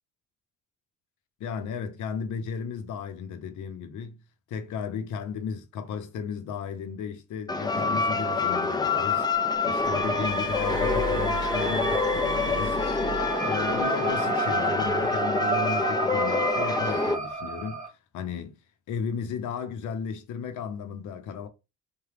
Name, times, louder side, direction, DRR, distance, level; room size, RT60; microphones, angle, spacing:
voice 1, 1.4-4.2 4.5-9.3 9.6-13.1 13.4-17.8 18.1-18.6 18.9-21.5, left 6 dB, 75° left, 0.7 m, -34 dB
sound 1, 7.5-17.2, left 4 dB, 15° left, 0.4 m, -27 dB
sound 2, 9.7-17.9, right 3 dB, 25° right, 1.2 m, -32 dB
Glass, 10.3-13.9 14.8-15.1, right 3 dB, 45° right, 0.4 m, -35 dB
2.8 x 2.3 x 3.2 m
cardioid pair, 90°, 30 cm